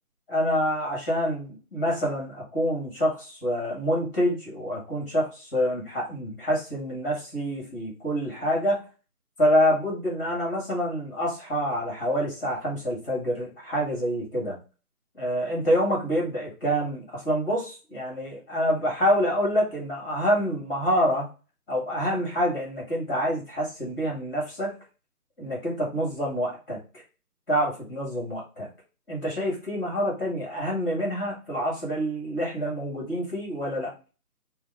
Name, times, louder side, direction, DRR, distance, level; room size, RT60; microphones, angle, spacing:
voice 1, 0.3-8.8 9.4-14.6 15.2-21.3 21.7-24.7 25.4-27.0 27.5-28.7 29.1-33.9, equal, 10° left, -3 dB, 1.6 m, -27 dB
5.2 x 2.3 x 3.5 m, 0.33 s
figure-of-eight pair, 155°, 45 cm